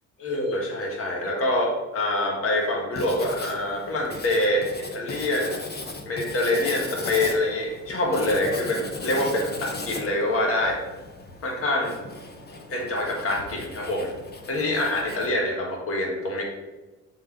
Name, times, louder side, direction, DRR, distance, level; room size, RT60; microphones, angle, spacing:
voice 1, 0.2-4.6 4.9-5.6 6.0-10.8 11.4-11.9 12.7-14.1 14.5-16.4, left 1 dB, 50° left, -1 dB, 1.5 m, -25 dB
Writing, 2.9-15.3, left 2 dB, 35° left, 1.0 m, -37 dB
7.4 x 3.8 x 3.6 m, 1.2 s
cardioid pair, 90°, 30 cm